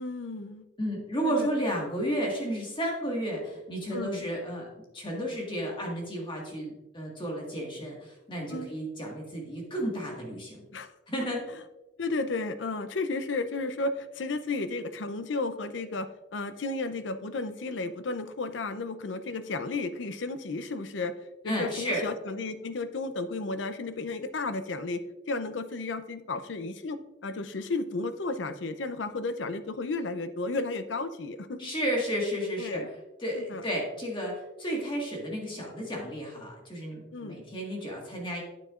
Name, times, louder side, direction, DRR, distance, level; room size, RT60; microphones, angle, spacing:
voice 1, 0.0-0.7 1.2-1.5 3.9-4.3 8.5-8.7 10.7-10.9 12.0-21.1 21.4-31.7 32.6-32.9 33.4-33.6 37.1-37.4, left 3 dB, 80° left, 11 dB, 0.6 m, -33 dB
voice 2, 0.8-4.7 4.9-10.6 11.1-11.4 21.5-22.0 31.6-32.8 33.2-38.4, equal, 30° left, -2 dB, 1.7 m, -32 dB
9.5 x 7.7 x 2.5 m, 1.0 s
head